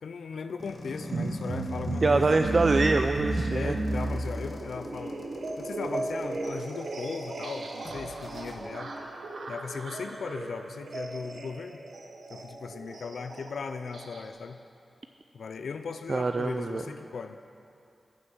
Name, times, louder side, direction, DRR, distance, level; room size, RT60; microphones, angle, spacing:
voice 1, 0.0-2.3 3.5-5.2 5.6-9.0 9.5-11.8 12.3-14.6 15.3-17.5, left 5 dB, 85° left, 8 dB, 0.4 m, -38 dB
sound 1, 0.6-8.6, left 1 dB, 55° left, 1.2 m, -45 dB
sound 2, 1.0-14.3, right 2 dB, 80° right, 1.0 m, -34 dB
voice 2, 2.0-3.8 16.1-16.8, right 3 dB, 50° right, 6 dB, 0.3 m, -24 dB
13.0 x 4.3 x 8.4 m, 2.6 s
cardioid pair, 60°, 0 cm